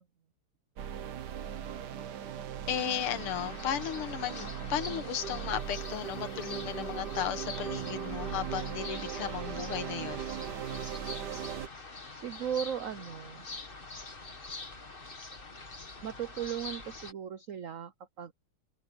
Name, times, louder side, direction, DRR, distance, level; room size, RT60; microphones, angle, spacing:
sound 1, 0.8-11.7, right 9 dB, 55° right, 1.5 m, -39 dB
voice 1, 2.7-10.3, left 10 dB, 90° left, 2.0 m, -35 dB
sound 2, 2.7-17.1, left 3 dB, 25° left, 2.0 m, -45 dB
voice 2, 12.1-13.5 16.0-18.3, right 9 dB, 85° right, 0.7 m, -37 dB
omnidirectional pair, 2.4 m